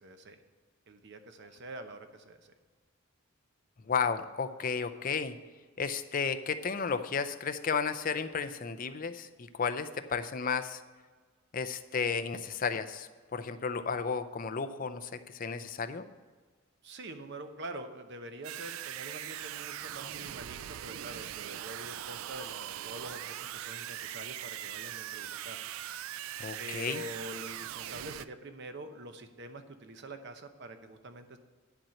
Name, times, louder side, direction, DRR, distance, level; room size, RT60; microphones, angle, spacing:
voice 1, 0.0-0.4 0.9-2.5 16.8-25.6 26.6-31.4, right 1 dB, 55° right, 7 dB, 0.8 m, -45 dB
voice 2, 3.9-5.3 5.8-10.8 11.5-16.0 26.4-27.0, left 5 dB, 40° left, 10 dB, 0.5 m, -33 dB
sound 1, 18.4-28.3, right 12 dB, 80° right, 0.3 m, -41 dB
10.5 x 4.4 x 7.7 m, 1.4 s
head